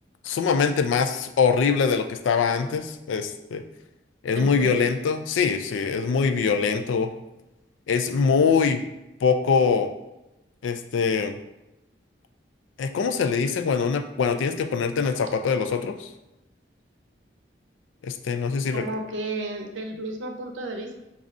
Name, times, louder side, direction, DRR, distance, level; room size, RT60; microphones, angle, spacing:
voice 1, 0.2-3.6 4.2-7.1 7.9-8.8 9.2-9.9 10.6-11.4 12.8-16.1 18.0-18.8, left 5 dB, 90° left, 7 dB, 0.3 m, -23 dB
voice 2, 4.4-4.9 18.7-21.0, right 2 dB, 90° right, 3 dB, 0.6 m, -32 dB
5.2 x 2.4 x 2.5 m, 0.94 s
head